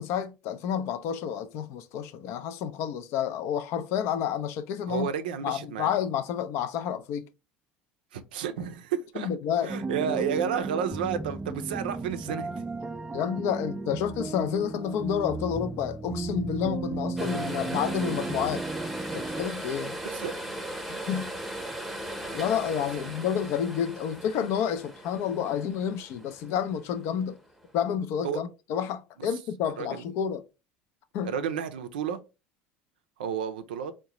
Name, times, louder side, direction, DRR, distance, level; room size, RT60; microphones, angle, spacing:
voice 1, 0.0-5.1 5.4-7.3 9.2-9.7 10.0-10.1 13.1-18.6 19.1-20.0 20.9-21.3 22.3-27.4 27.7-30.4 31.1-31.3, left 8 dB, 65° left, 0.4 m, -30 dB
voice 2, 4.8-5.9 8.1-9.3 9.6-12.6 20.0-20.6 23.0-23.1 28.2-28.4 29.2-29.3 29.8-30.0 31.2-32.2 33.2-33.9, right 8 dB, 90° right, 0.4 m, -31 dB
sound 1, 9.7-19.4, right 3 dB, 20° right, 0.3 m, -35 dB
sound 2, 17.2-27.5 27.8-27.9, right 1 dB, ahead, 0.7 m, -38 dB
3.7 x 2.1 x 2.9 m
hypercardioid pair, 85°, 5 cm